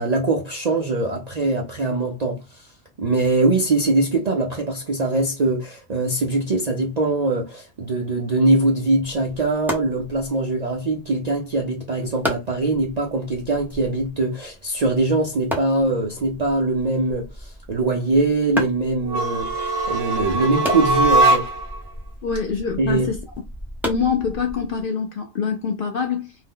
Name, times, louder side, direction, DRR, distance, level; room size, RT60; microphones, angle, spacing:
voice 1, 0.0-2.7 3.0-21.5 22.8-23.1, right 2 dB, 55° right, 0.4 m, -22 dB
sound 1, 9.0-24.8, equal, ahead, 0.5 m, -35 dB
sound 2, 19.0-21.8, right 2 dB, 75° right, 1.0 m, -20 dB
voice 2, 22.2-23.2 23.8-26.3, left 6 dB, 60° left, 0.6 m, -25 dB
2.7 x 2.0 x 3.6 m
omnidirectional pair, 1.3 m